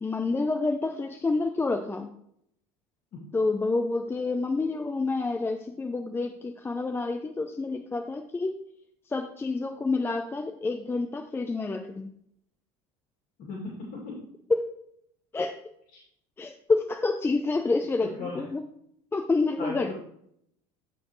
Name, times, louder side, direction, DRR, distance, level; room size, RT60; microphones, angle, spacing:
voice 1, 0.0-2.1 3.3-8.5 9.1-12.1 14.5-14.6 15.3-15.5 16.4-18.6 19.1-19.9, left 3 dB, 15° left, 6 dB, 0.5 m, -28 dB
voice 2, 13.4-14.2 18.2-18.4 19.6-19.9, left 4 dB, 55° left, -3 dB, 2.5 m, -36 dB
13.0 x 4.4 x 3.1 m, 0.72 s
supercardioid pair, 110°, 17 cm